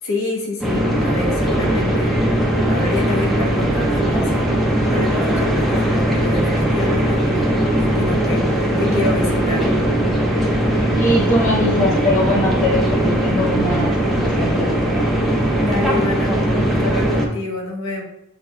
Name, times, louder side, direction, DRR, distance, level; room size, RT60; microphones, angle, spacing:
voice 1, 0.0-4.5 4.9-9.7 15.6-18.0, left 2 dB, 75° left, -2 dB, 0.9 m, -27 dB
sound 1, 0.6-17.3, right 1 dB, ahead, 0.6 m, -19 dB
voice 2, 10.9-14.7, left 1 dB, 40° left, -3 dB, 1.0 m, -21 dB
6.9 x 2.7 x 2.2 m, 0.79 s
head